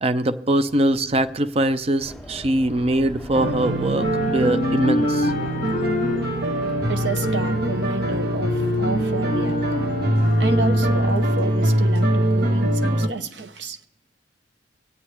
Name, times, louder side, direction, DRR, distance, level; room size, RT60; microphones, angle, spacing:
voice 1, 0.0-5.3, right 1 dB, 35° right, 0.5 m, -22 dB
sound 1, 0.7-3.6 3.8-12.0, left 2 dB, 50° left, 0.5 m, -30 dB
sound 2, 2.0-11.1, equal, ahead, 2.8 m, -40 dB
sound 3, 3.3-13.1, right 1 dB, 60° right, 1.2 m, -22 dB
voice 2, 6.9-9.9 10.4-13.8, right 3 dB, 80° right, 0.8 m, -30 dB
25.5 x 8.6 x 3.3 m
head